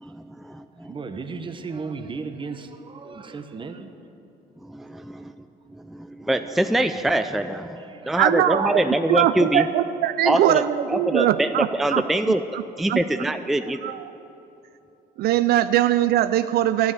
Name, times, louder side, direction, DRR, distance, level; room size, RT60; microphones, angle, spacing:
voice 1, 0.2-0.9 4.6-5.3 5.7-9.7 10.2-10.6 10.9-12.4 12.8-13.9, right 1 dB, ahead, 9 dB, 0.4 m, -24 dB
voice 2, 0.8-3.9 7.7-8.2, right 4 dB, 30° right, 8 dB, 1.1 m, -35 dB
voice 3, 8.2-12.6 12.9-13.0 13.6-14.1 15.2-16.9, right 12 dB, 70° right, 12 dB, 0.4 m, -22 dB
11.5 x 9.6 x 9.3 m, 2.9 s
cardioid pair, 110°, 17 cm